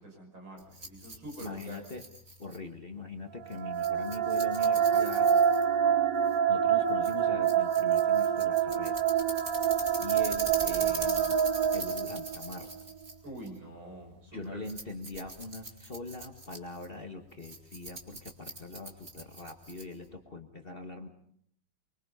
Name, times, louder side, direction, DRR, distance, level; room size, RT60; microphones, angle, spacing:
voice 1, 0.0-1.9 13.2-14.7, right 1 dB, 75° right, 1 dB, 6.8 m, -45 dB
Rattle, 0.6-20.1, right 2 dB, 30° right, 3.1 m, -43 dB
voice 2, 1.4-2.0 2.4-5.3 6.5-9.0 10.0-11.4 11.7-12.7 14.3-21.1, left 3 dB, 30° left, 5 dB, 1.7 m, -42 dB
sound 1, 3.4-12.6, right 8 dB, 45° right, 1.7 m, -26 dB
24.5 x 24.5 x 5.6 m, 0.67 s
omnidirectional pair, 2.2 m